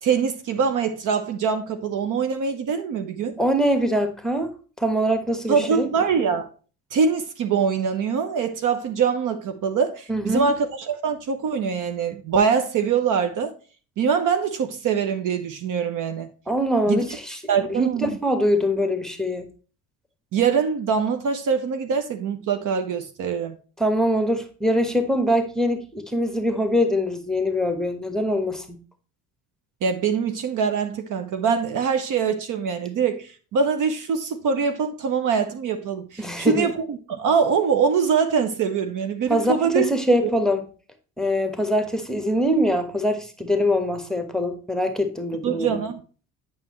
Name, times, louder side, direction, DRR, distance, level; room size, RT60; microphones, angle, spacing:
voice 1, 0.0-3.4 5.5-6.5 6.9-13.5 14.0-16.3 16.9-17.0 17.5-18.2 20.3-23.6 29.8-40.3 45.4-46.0, right 6 dB, 45° right, 0.9 m, -23 dB
voice 2, 3.4-4.5 4.8-5.9 10.1-10.5 16.5-17.4 17.7-19.5 23.8-28.8 36.2-36.7 39.3-40.6 41.2-45.8, equal, ahead, 1.2 m, -23 dB
8.7 x 6.0 x 3.1 m
figure-of-eight pair, 55°, 44 cm